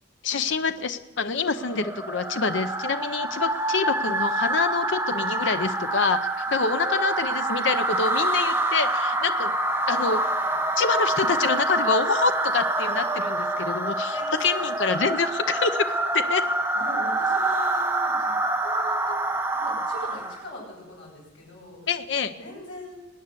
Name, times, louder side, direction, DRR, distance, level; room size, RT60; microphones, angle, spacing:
voice 1, 0.2-9.5 9.9-10.2 10.8-15.9 16.1-16.4 21.9-22.3, left 5 dB, 70° left, 11 dB, 0.6 m, -26 dB
sound 1, 1.6-20.5, right 2 dB, 10° right, 0.9 m, -26 dB
voice 2, 14.1-14.6 16.7-18.3 18.6-19.2 19.5-21.8 22.4-23.0, left 1 dB, 90° left, -10 dB, 6.9 m, -40 dB
21.0 x 9.4 x 6.7 m, 1.1 s
head